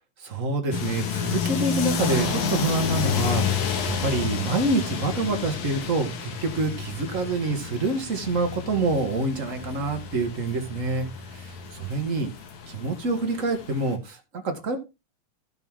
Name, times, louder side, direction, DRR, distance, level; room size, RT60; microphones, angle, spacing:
voice 1, 0.2-11.1 11.3-12.3 12.7-14.8, right 3 dB, 35° right, 4 dB, 1.4 m, -27 dB
sound 1, 0.7-13.9, left 6 dB, 80° left, 2.9 m, -30 dB
13.5 x 6.2 x 3.7 m, 0.27 s
omnidirectional pair, 3.4 m